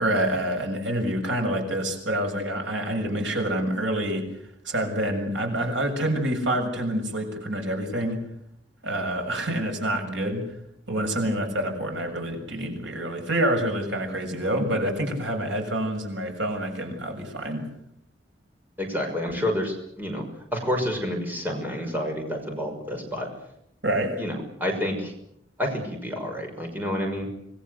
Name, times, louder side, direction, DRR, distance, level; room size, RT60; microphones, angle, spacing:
voice 1, 0.0-4.3 4.6-8.2 8.8-10.5 10.9-17.6 23.8-24.2, right 1 dB, 80° right, 3 dB, 6.8 m, -27 dB
voice 2, 18.8-20.2 20.5-23.3 24.2-24.3 24.6-25.1 25.6-27.3, equal, 10° right, 2 dB, 6.0 m, -29 dB
26.5 x 21.0 x 8.1 m, 0.76 s
head